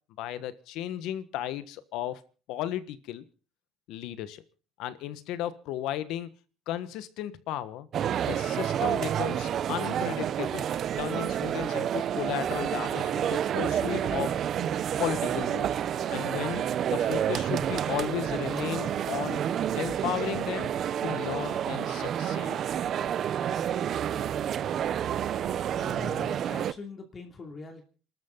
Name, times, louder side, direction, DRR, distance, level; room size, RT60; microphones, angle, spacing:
voice 1, 0.2-2.2 2.5-3.2 3.9-4.4 4.8-6.3 6.7-7.9 8.2-10.7 11.0-14.4 15.0-15.7 16.1-19.4 19.8-20.7 21.0-22.6, left 12 dB, 75° left, 1.4 m, -34 dB
sound 1, 7.9-26.7, right 9 dB, 45° right, 0.7 m, -29 dB
voice 2, 25.7-27.8, left 4 dB, 30° left, 2.8 m, -43 dB
28.0 x 12.5 x 3.9 m
cardioid pair, 135°, 0 cm